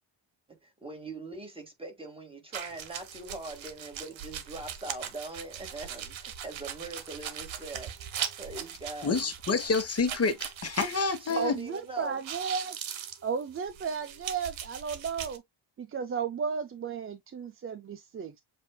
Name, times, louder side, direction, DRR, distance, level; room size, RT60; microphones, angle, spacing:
voice 1, 0.5-7.9 8.4-9.2 11.2-12.2, right 2 dB, 10° right, 1.8 m, -42 dB
sound 1, 2.5-11.8 12.0-15.4, right 9 dB, 80° right, 1.0 m, -40 dB
voice 2, 9.0-11.6, left 4 dB, 30° left, 1.1 m, -28 dB
voice 3, 11.4-12.8 13.2-15.4 15.8-18.4, right 6 dB, 30° right, 0.4 m, -34 dB
7.5 x 2.6 x 2.3 m
wide cardioid pair, 140°, 46 cm